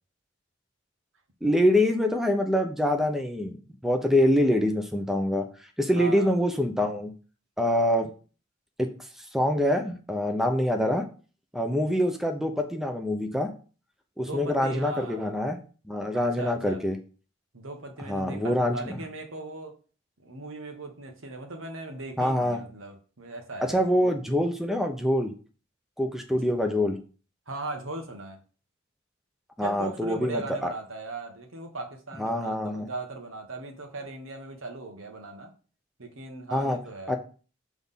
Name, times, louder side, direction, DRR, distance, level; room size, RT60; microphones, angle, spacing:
voice 1, 1.4-3.6 3.8-5.4 5.8-7.1 7.6-8.1 8.8-8.9 9.3-11.1 11.5-13.5 14.2-15.6 15.9-17.0 18.1-19.0 22.2-22.6 23.6-25.3 26.0-27.0 29.6-30.7 32.2-32.9 36.5-36.8 37.1-37.2, left 1 dB, ahead, 5 dB, 0.7 m, -25 dB
voice 2, 6.0-6.3 14.2-15.3 16.1-16.8 17.5-19.7 20.2-24.1 27.5-28.4 29.6-35.5 36.0-37.1, right 2 dB, 85° right, 4 dB, 1.4 m, -38 dB
6.1 x 3.5 x 5.6 m, 0.38 s
head